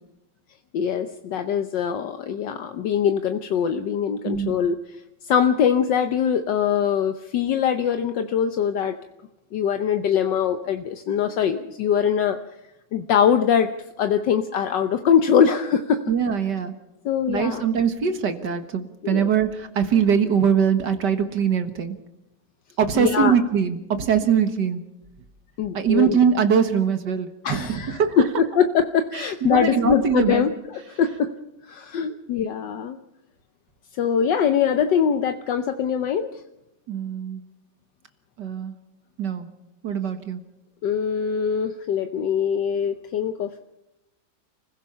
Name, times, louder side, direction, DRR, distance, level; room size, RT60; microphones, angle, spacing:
voice 1, 0.7-5.0 5.2-9.0 9.5-12.4 12.9-13.7 14.0-16.0 17.0-17.7 19.0-19.3 23.0-23.4 25.6-26.2 27.4-31.3 31.7-33.0 33.9-36.3 40.8-43.6, left 8 dB, 75° left, 8 dB, 1.5 m, -22 dB
voice 2, 4.2-4.6 16.1-16.7 17.3-22.0 22.8-24.8 25.7-28.2 29.1-30.4 36.9-37.4 38.4-38.7 39.2-39.5 39.8-40.4, right 7 dB, 70° right, 8 dB, 2.1 m, -22 dB
30.0 x 16.5 x 5.6 m, 0.93 s
omnidirectional pair, 2.0 m